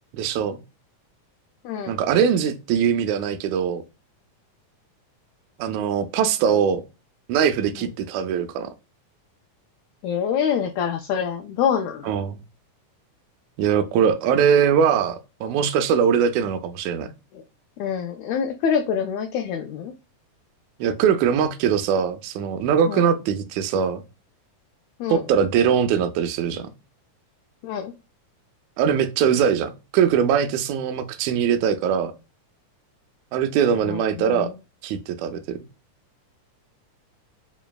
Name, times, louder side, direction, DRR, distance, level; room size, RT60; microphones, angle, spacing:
voice 1, 0.1-0.6 1.9-3.8 5.6-6.8 7.3-8.7 12.1-12.4 13.6-17.1 20.8-24.0 25.1-26.7 28.8-32.1 33.3-34.5 34.8-35.6, right 7 dB, 80° right, 1.8 m, -21 dB
voice 2, 1.6-2.0 7.8-7.9 10.0-12.1 17.3-17.4 17.8-19.9 22.9-23.1 25.0-25.2 27.6-27.9 33.9-34.5, left 7 dB, 85° left, 1.6 m, -26 dB
5.0 x 3.0 x 2.3 m
omnidirectional pair, 3.8 m